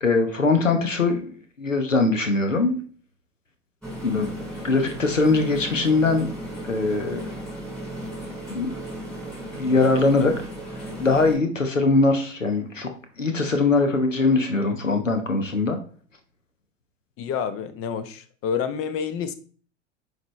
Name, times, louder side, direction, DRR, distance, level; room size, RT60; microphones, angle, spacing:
voice 1, 0.0-2.7 4.0-4.3 4.6-6.3 6.6-7.2 8.5-8.8 9.5-10.3 10.8-12.9 13.2-15.8, left 3 dB, 85° left, 1.1 m, -21 dB
sound 1, 3.8-11.4, right 1 dB, 5° left, 3.7 m, -35 dB
voice 2, 17.2-19.3, left 7 dB, 35° left, 0.9 m, -29 dB
9.4 x 5.0 x 3.2 m
figure-of-eight pair, 80°, 37 cm